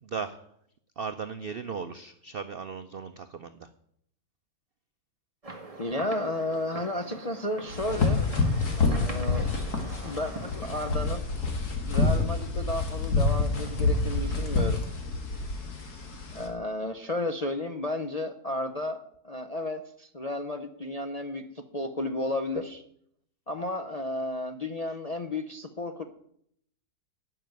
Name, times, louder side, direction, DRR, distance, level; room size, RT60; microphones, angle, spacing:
voice 1, 0.0-0.4 1.0-3.7, right 5 dB, 90° right, 9 dB, 0.5 m, -37 dB
sound 1, 5.4-11.0, right 3 dB, 20° right, 1.4 m, -42 dB
voice 2, 5.8-8.2 8.8-9.5 10.0-11.3 11.8-14.8 16.3-19.0 19.2-22.8 23.5-26.0, left 2 dB, 45° left, 5 dB, 0.4 m, -33 dB
sound 2, 7.7-16.5, left 3 dB, 65° left, 2.3 m, -27 dB
12.0 x 6.0 x 9.2 m, 0.70 s
omnidirectional pair, 1.8 m